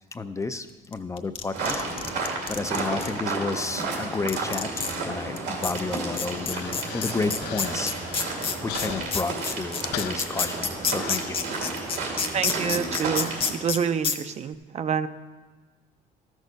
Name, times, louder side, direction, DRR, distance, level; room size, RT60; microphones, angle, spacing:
voice 1, 0.1-1.8 2.5-8.0 8.6-11.4, left 3 dB, 20° left, 9 dB, 0.4 m, -31 dB
sound 1, 0.9-3.1 3.8-3.9 4.3-5.0 5.4-5.5 5.6-13.8 14.0-14.2, left 5 dB, 35° left, 0.9 m, -28 dB
sound 2, 1.5-13.5, right 3 dB, 80° right, 2.3 m, -32 dB
Human voice, 5.7-11.9, left 13 dB, 80° left, 0.4 m, -40 dB
voice 2, 12.3-15.1, right 7 dB, 40° right, 11 dB, 0.5 m, -27 dB
13.0 x 6.3 x 5.3 m, 1.3 s
cardioid pair, 110°, 17 cm